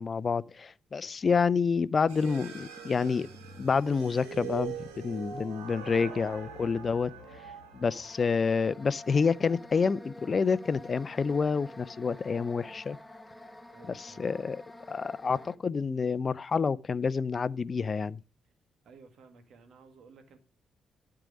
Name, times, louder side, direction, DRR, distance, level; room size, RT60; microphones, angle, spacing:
voice 1, 0.0-3.3 3.6-7.1 7.7-13.0 13.9-14.6 14.9-18.2, left 5 dB, 45° left, 0.5 m, -28 dB
voice 2, 1.0-1.4 7.8-8.1 13.7-14.3 18.8-20.4, right 4 dB, 65° right, 1.8 m, -55 dB
sound 1, 2.1-8.0, right 7 dB, 80° right, 1.9 m, -42 dB
sound 2, 8.0-15.6, left 1 dB, 15° left, 0.9 m, -49 dB
12.0 x 4.8 x 5.0 m
hypercardioid pair, 40°, 0 cm